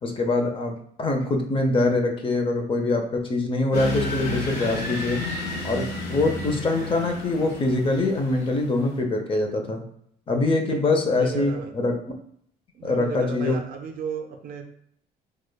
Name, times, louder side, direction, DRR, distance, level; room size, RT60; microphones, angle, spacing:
voice 1, 0.0-5.2 5.6-9.8 10.3-12.0 12.8-13.6, left 2 dB, 30° left, 4 dB, 0.6 m, -24 dB
sound 1, 3.7-9.0, left 3 dB, 90° left, 1.3 m, -32 dB
voice 2, 11.2-11.8 12.7-14.6, right 6 dB, 60° right, 5 dB, 0.6 m, -34 dB
4.8 x 2.2 x 2.2 m, 0.68 s
cardioid pair, 110°, 17 cm